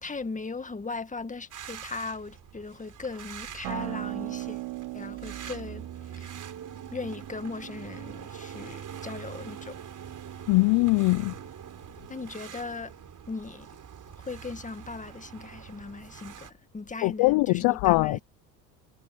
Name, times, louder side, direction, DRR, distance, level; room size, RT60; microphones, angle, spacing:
voice 1, 0.0-4.6 4.9-6.4 6.9-9.8 12.1-12.9 13.3-13.7 14.2-18.2, left 4 dB, 15° left, 2.0 m, -38 dB
sound 1, 1.5-16.5, right 9 dB, 40° right, 4.1 m, -44 dB
Acoustic guitar, 3.6-8.8, right 22 dB, 65° right, 4.2 m, -39 dB
voice 2, 10.5-11.3 17.0-18.2, left 25 dB, 55° left, 0.6 m, -22 dB
hypercardioid pair, 80°, 49 cm